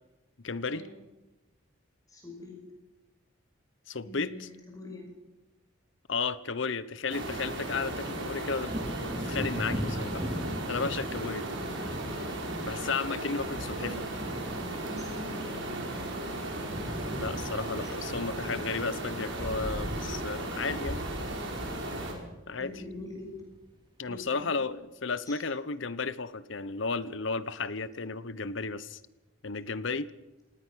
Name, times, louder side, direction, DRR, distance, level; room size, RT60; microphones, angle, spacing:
voice 1, 0.4-0.8 3.9-4.5 6.1-8.7 9.0-10.3 10.7-11.5 12.7-13.9 17.2-21.0 22.5-22.7 24.0-29.0 29.4-30.1, left 4 dB, 60° left, 16 dB, 1.0 m, -33 dB
voice 2, 2.1-2.5 4.0-5.0 11.5-11.8 13.6-14.0 14.7-16.0 17.8-17.9 22.6-23.3 24.1-24.5 25.2-25.4, left 1 dB, 15° left, 0 dB, 5.7 m, -44 dB
sound 1, 7.1-22.1, right 1 dB, 60° right, 5.2 m, -36 dB
Wind / Thunder, 8.6-16.2 16.5-23.7 24.1-24.3, equal, 25° right, 3.9 m, -41 dB
26.5 x 18.5 x 6.4 m, 1.1 s
head